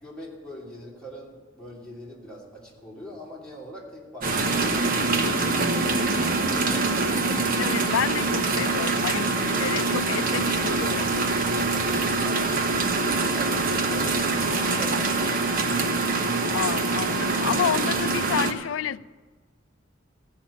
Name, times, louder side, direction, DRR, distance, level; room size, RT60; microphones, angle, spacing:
voice 1, 0.0-6.3 7.0-8.1 11.4-12.4 12.9-15.9, equal, 5° left, -5 dB, 2.8 m, -43 dB
sound 1, 4.2-18.5, right 3 dB, 45° right, 1.0 m, -24 dB
voice 2, 7.6-11.1 16.5-19.1, left 8 dB, 75° left, 17 dB, 0.4 m, -29 dB
14.0 x 5.7 x 8.4 m, 1.4 s
head